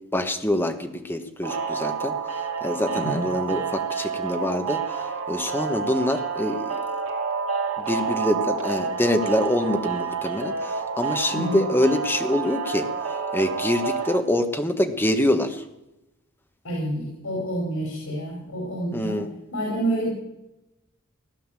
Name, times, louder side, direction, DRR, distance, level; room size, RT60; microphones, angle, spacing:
voice 1, 0.1-2.1 2.6-6.8 7.8-12.9 13.3-15.6 18.9-19.3, left 1 dB, 10° left, 5 dB, 1.3 m, -25 dB
sound 1, 1.4-14.2, right 5 dB, 75° right, 2.6 m, -29 dB
voice 2, 16.6-19.2 19.5-20.1, right 1 dB, 90° left, -1 dB, 4.9 m, -28 dB
16.5 x 11.0 x 7.5 m, 0.93 s
head